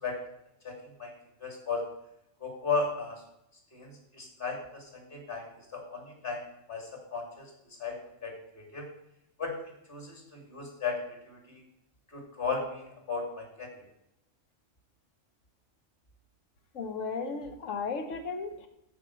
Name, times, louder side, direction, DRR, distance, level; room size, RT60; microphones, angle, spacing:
voice 1, 1.4-1.9 2.4-3.2 3.7-5.5 5.7-6.4 6.7-7.5 7.8-8.0 8.2-8.9 9.4-9.5 9.9-11.0 11.3-11.6 12.1-13.7, left 4 dB, 45° left, 1 dB, 2.7 m, -35 dB
voice 2, 16.7-18.7, left 4 dB, 80° left, 7 dB, 1.4 m, -35 dB
14.0 x 4.6 x 6.2 m, 0.84 s
omnidirectional pair, 1.3 m